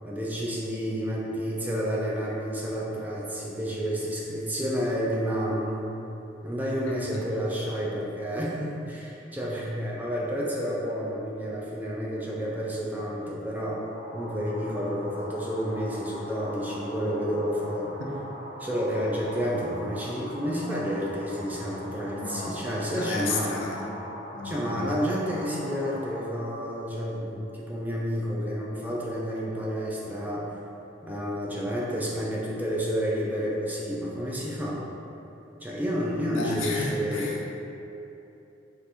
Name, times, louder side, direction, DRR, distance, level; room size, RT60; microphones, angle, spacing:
voice 1, 0.0-5.9 6.4-13.8 14.1-17.9 18.6-23.5 24.4-30.6 31.0-34.8 35.6-37.5, equal, 10° right, -5 dB, 0.3 m, -30 dB
voice 2, 6.9-7.2 18.0-18.1 22.1-24.0 24.3-25.0 36.3-37.5, left 2 dB, 75° left, -2 dB, 0.5 m, -33 dB
sound 1, 13.9-26.2, equal, 30° left, 0.7 m, -41 dB
2.8 x 2.5 x 3.4 m, 2.9 s
head